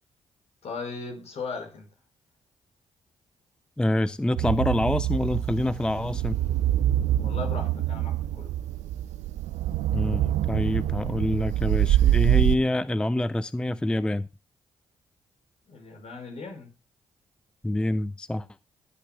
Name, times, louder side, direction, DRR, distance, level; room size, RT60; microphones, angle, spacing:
voice 1, 0.6-1.9 7.2-8.6 15.7-16.7, left 4 dB, 60° left, 5.4 m, -37 dB
voice 2, 3.8-6.4 9.9-14.3 17.6-18.5, left 1 dB, 5° left, 0.5 m, -26 dB
sound 1, 4.4-12.6, right 12 dB, 80° right, 0.5 m, -25 dB
22.0 x 8.4 x 2.3 m
supercardioid pair, 50°, 12 cm